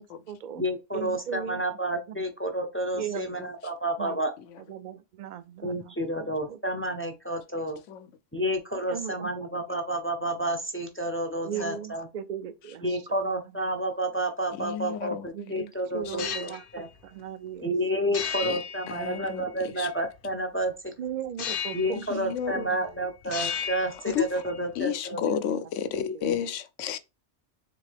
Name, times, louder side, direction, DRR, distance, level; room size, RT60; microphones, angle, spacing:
voice 1, 0.0-0.6 0.9-1.6 2.1-2.2 3.0-3.4 4.0-4.3 4.7-5.9 6.5-6.6 8.9-9.3 11.4-12.8 15.3-16.8 17.1-17.7 21.0-22.0 22.5-22.7 25.1-25.3 26.1-26.2, right 8 dB, 55° right, 0.5 m, -37 dB
voice 2, 0.5-4.3 5.6-7.8 8.3-12.1 12.8-16.9 17.6-20.9 21.7-25.2 25.9-26.4, right 1 dB, 20° left, 0.3 m, -30 dB
voice 3, 14.6-15.3 16.1-16.2 18.4-18.6 18.9-19.4 19.8-19.9 21.9-22.6 23.4-23.5 24.1-24.3 24.8-27.0, left 8 dB, 85° left, 0.9 m, -31 dB
sound 1, 16.0-16.6 18.1-19.6 21.4-22.1 22.4-22.9 23.2-24.6, left 8 dB, 60° left, 0.6 m, -35 dB
3.8 x 3.6 x 3.3 m
omnidirectional pair, 1.2 m